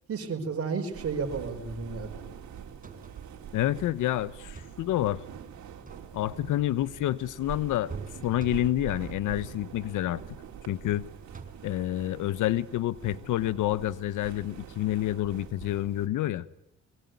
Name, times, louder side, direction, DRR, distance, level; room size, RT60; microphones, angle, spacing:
voice 1, 0.1-2.1, right 5 dB, 50° right, 5.2 m, -32 dB
sound 1, 0.9-16.1, right 9 dB, 70° right, 3.9 m, -44 dB
sound 2, 2.6-3.4 4.3-4.9 5.7-6.4 7.9-8.9 9.8-10.2 10.8-11.8 13.5-13.6, right 4 dB, 25° right, 5.0 m, -45 dB
voice 2, 3.5-5.2 6.1-7.9 8.2-10.2 10.7-11.1 11.6-16.4, left 14 dB, 85° left, 1.2 m, -28 dB
23.5 x 23.0 x 9.5 m
cardioid pair, 90°, 30 cm